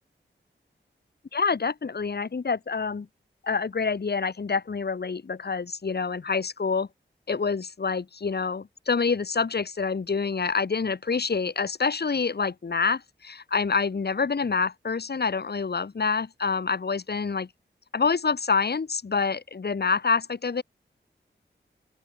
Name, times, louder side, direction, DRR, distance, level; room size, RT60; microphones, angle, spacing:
voice 1, 1.3-3.1 3.4-6.9 7.3-17.5 17.9-20.6, left 5 dB, 55° left, 1.4 m, -27 dB
open air
cardioid pair, 55°, 20 cm